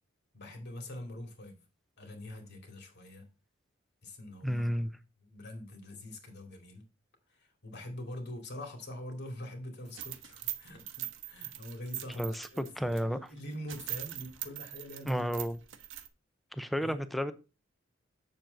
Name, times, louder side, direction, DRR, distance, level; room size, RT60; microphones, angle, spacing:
voice 1, 0.3-1.6 2.0-3.3 4.0-4.7 5.2-6.8 7.3-15.3 16.8-16.9, left 1 dB, 60° left, 2.4 m, -44 dB
voice 2, 4.4-4.9 12.1-12.5 12.8-13.2 15.1-15.6 16.5-17.3, equal, ahead, 0.6 m, -31 dB
sound 1, 9.9-13.0 13.4-13.5 13.7-16.1, right 13 dB, 70° right, 0.9 m, -41 dB
7.5 x 7.0 x 3.9 m
head